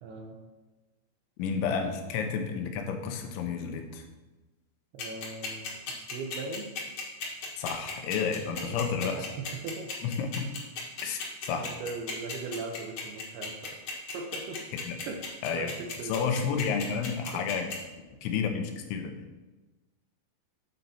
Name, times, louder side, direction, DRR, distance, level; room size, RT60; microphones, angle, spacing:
voice 1, 0.0-0.4 4.9-5.9 6.1-6.7 8.6-9.9 11.5-13.7 14.1-14.6 15.1-15.2 15.5-16.5 17.3-17.4, right 4 dB, 75° right, 1 dB, 2.4 m, -39 dB
voice 2, 1.4-4.0 7.6-9.3 10.0-10.5 11.0-11.7 14.9-15.0 15.4-15.7 16.0-17.7 18.2-19.2, left 6 dB, 85° left, 5 dB, 3.2 m, -31 dB
sound 1, 5.0-17.7, left 5 dB, 65° left, 1.6 m, -36 dB
9.1 x 4.0 x 5.7 m, 1.2 s
omnidirectional pair, 5.2 m